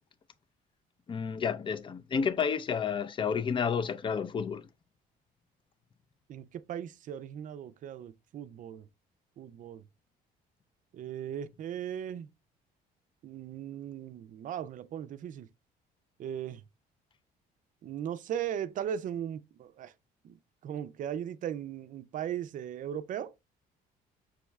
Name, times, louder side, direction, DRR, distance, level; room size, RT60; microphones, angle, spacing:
voice 1, 1.1-4.7, left 6 dB, 30° left, 0.5 m, -30 dB
voice 2, 6.3-8.9 9.4-9.8 10.9-12.3 13.2-15.5 16.2-16.6 17.8-19.9 20.2-20.4 20.6-23.3, right 9 dB, 50° right, 0.5 m, -38 dB
6.1 x 2.3 x 3.1 m
cardioid pair, 110°, 17 cm